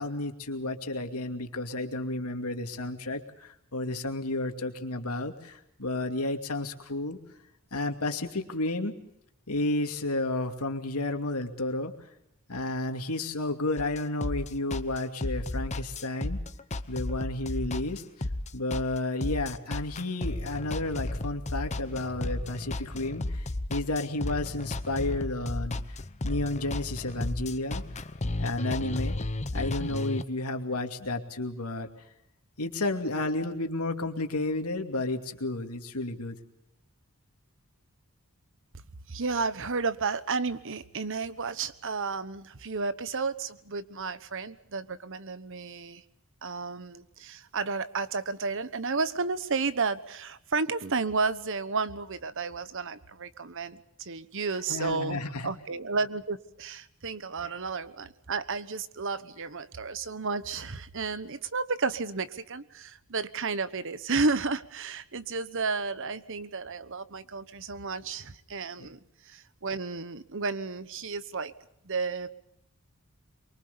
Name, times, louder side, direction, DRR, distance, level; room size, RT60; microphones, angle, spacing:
voice 1, 0.0-7.2 7.7-8.9 9.5-11.9 12.5-16.4 16.9-18.3 18.5-26.0 26.2-28.0 28.4-29.2 29.5-31.9 32.6-36.4 54.7-55.5 57.4-57.5 68.8-68.9, left 2 dB, 85° left, 5 dB, 2.5 m, -32 dB
sound 1, 13.8-30.2, left 2 dB, 30° left, 0.8 m, -33 dB
voice 2, 39.1-46.0 46.4-69.0 69.2-71.5 71.8-72.3, right 4 dB, 60° right, 14 dB, 1.2 m, -32 dB
24.0 x 23.5 x 7.0 m, 0.77 s
head